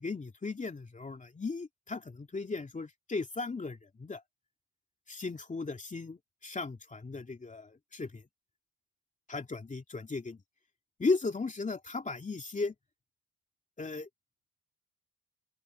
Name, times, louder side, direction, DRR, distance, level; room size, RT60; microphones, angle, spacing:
voice 1, 0.0-4.2 5.1-8.2 9.3-10.4 11.0-12.7 13.8-14.1, left 3 dB, 25° left, 2.7 m, -36 dB
open air
cardioid pair, 90°, 30 cm